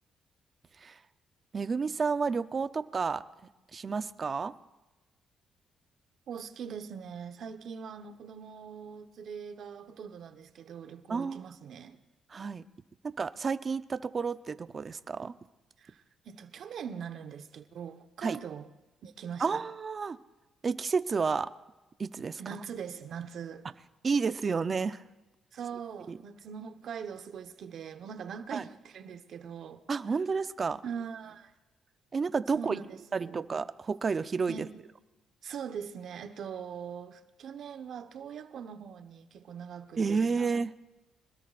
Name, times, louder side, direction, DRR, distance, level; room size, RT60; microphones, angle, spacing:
voice 1, 1.5-3.2 3.7-4.5 11.1-11.5 12.3-12.6 13.2-15.3 18.2-18.4 19.4-20.2 20.6-21.5 22.0-22.4 24.0-25.0 26.1-26.2 28.5-28.6 29.9-30.8 32.1-32.8 33.1-34.7 40.0-40.7, right 5 dB, 40° right, 0.7 m, -30 dB
voice 2, 6.3-12.0 15.8-18.7 19.0-19.6 22.4-23.6 25.5-29.8 30.8-31.5 32.5-33.5 34.5-34.8 35.4-40.5, right 7 dB, 65° right, 1.2 m, -42 dB
26.5 x 20.0 x 2.6 m
cardioid pair, 90°, 0 cm